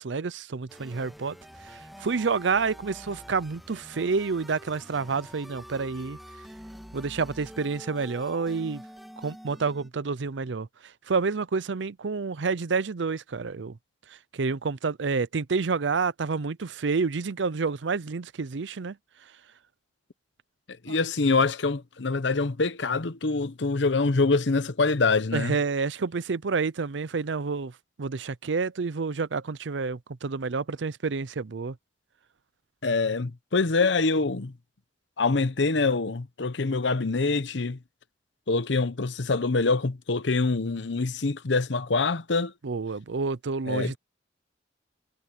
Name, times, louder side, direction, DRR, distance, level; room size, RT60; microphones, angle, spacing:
voice 1, 0.0-1.4 1.6-6.2 6.9-8.8 9.2-10.7 11.1-13.8 14.1-19.0 20.9-21.0 25.3-27.7 28.0-31.8 42.6-44.0, right 4 dB, 70° right, 0.6 m, -29 dB
sound 1, 0.7-9.9, equal, ahead, 2.3 m, -46 dB
voice 2, 20.8-25.6 32.8-34.5 35.2-37.8 38.5-42.5 43.7-44.0, left 3 dB, 70° left, 0.9 m, -25 dB
head